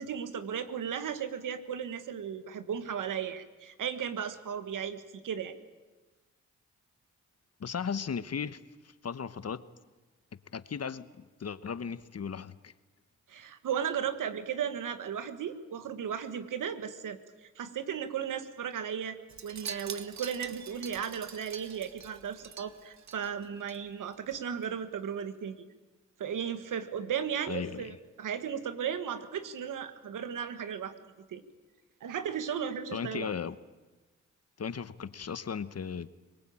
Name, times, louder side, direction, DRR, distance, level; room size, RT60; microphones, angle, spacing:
voice 1, 0.0-5.5 13.3-25.7 26.2-30.9 31.3-31.4 32.0-33.3, right 8 dB, 90° right, 1.7 m, -35 dB
voice 2, 7.6-9.6 10.5-12.7 27.5-27.9 32.9-33.5 34.6-36.1, left 6 dB, 55° left, 1.1 m, -36 dB
Wind chime, 19.3-23.8 24.1-24.4 24.6-24.7, right 7 dB, 65° right, 1.4 m, -45 dB
23.0 x 21.0 x 8.8 m
cardioid pair, 55°, 31 cm